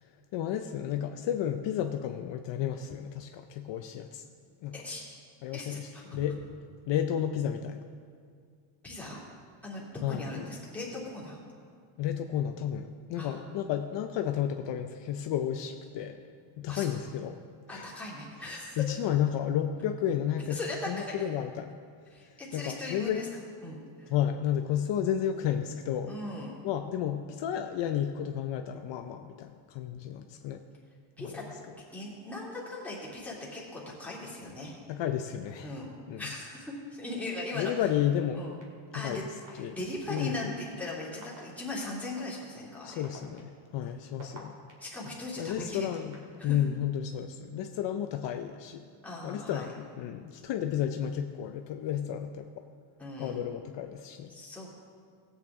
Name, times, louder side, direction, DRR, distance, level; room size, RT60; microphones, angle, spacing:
voice 1, 0.3-4.2 4.6-4.8 5.4-6.4 6.9-7.8 10.0-10.5 12.0-16.2 16.6-17.4 17.7-18.0 18.4-20.6 20.9-21.7 22.5-23.2 24.1-26.2 26.6-30.6 31.2-31.4 34.9-35.8 36.1-36.3 37.5-38.4 39.0-39.3 39.5-39.8 40.1-40.5 42.8-44.6 45.4-48.9 49.2-52.6 53.2-54.3, left 10 dB, 60° left, 6 dB, 0.6 m, -32 dB
voice 2, 4.7-5.0 5.5-6.0 8.8-9.2 9.6-11.4 13.2-13.4 16.7-17.0 17.7-18.8 20.5-21.1 22.1-23.2 23.6-24.1 26.1-26.6 31.2-31.4 31.9-34.8 35.6-35.9 36.2-37.8 38.3-38.6 38.9-39.2 39.5-43.0 43.8-44.0 44.8-46.0 46.4-46.5 49.0-49.7 53.0-53.4 54.3-54.7, left 2 dB, 5° left, -7 dB, 2.4 m, -39 dB
sound 1, 38.6-38.7 39.5-39.6 40.2-40.4 41.1-41.4 42.2-42.3 42.9-44.9 45.6-46.4, right 3 dB, 35° right, 2.2 m, -48 dB
18.0 x 8.1 x 3.6 m, 2.1 s
cardioid pair, 170°, 49 cm